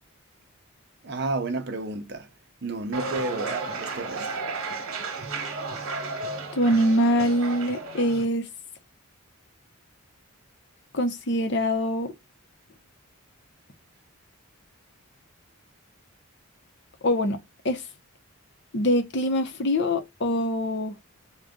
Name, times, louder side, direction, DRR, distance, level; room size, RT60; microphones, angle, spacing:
voice 1, 1.0-2.3 2.6-4.4, right 2 dB, 50° right, 0.7 m, -31 dB
sound 1, 2.9-8.3, right 3 dB, 65° right, 1.0 m, -33 dB
voice 2, 6.5-8.5 10.9-12.1 17.0-17.4 17.6-17.8 18.7-20.9, equal, 50° left, 0.7 m, -24 dB
3.9 x 2.2 x 3.6 m
head